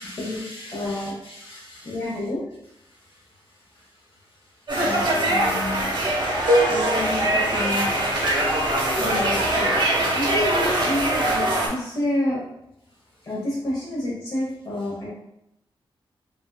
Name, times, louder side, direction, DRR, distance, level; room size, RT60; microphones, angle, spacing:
voice 1, 0.0-2.2 2.9-4.8, left 1 dB, 70° left, -6 dB, 1.3 m, -45 dB
voice 2, 0.7-1.1 1.8-2.4 4.8-5.9 6.7-7.9 9.0-9.7 10.1-12.4 13.2-15.1, left 1 dB, 40° left, -7 dB, 0.9 m, -28 dB
sound 1, 4.7-11.7, right 1 dB, 55° right, 0.9 m, -23 dB
sound 2, 6.5-8.5, equal, 85° right, 0.6 m, -25 dB
3.4 x 2.6 x 2.2 m, 0.81 s
wide cardioid pair, 140°, 9 cm